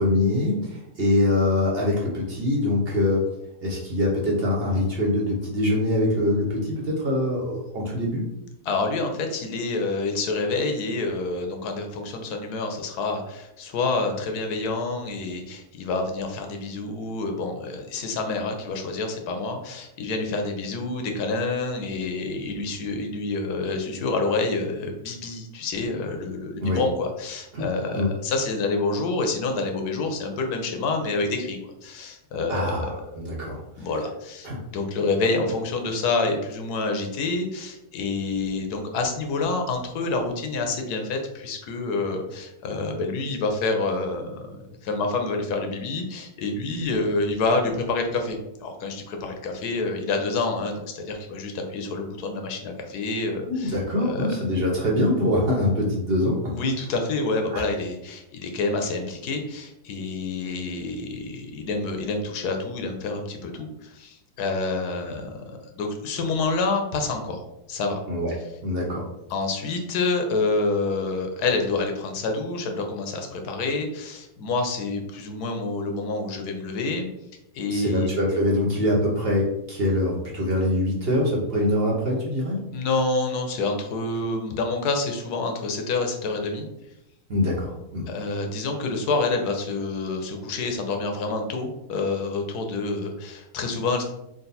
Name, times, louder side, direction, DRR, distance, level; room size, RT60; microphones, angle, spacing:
voice 1, 0.0-3.2 3.6-8.3 26.6-26.8 27.5-27.7 27.9-28.1 32.5-33.9 34.4-34.6 53.4-56.5 57.5-57.6 68.1-68.3 68.6-69.0 77.7-82.6 87.3-88.1, left 1 dB, 45° right, -3 dB, 1.0 m, -24 dB
voice 2, 8.6-32.9 33.8-34.5 34.7-54.3 56.5-68.0 69.3-77.1 77.5-78.1 82.7-86.7 88.1-94.0, left 3 dB, 85° left, 4 dB, 1.3 m, -28 dB
3.9 x 2.3 x 4.0 m, 0.85 s
omnidirectional pair, 1.6 m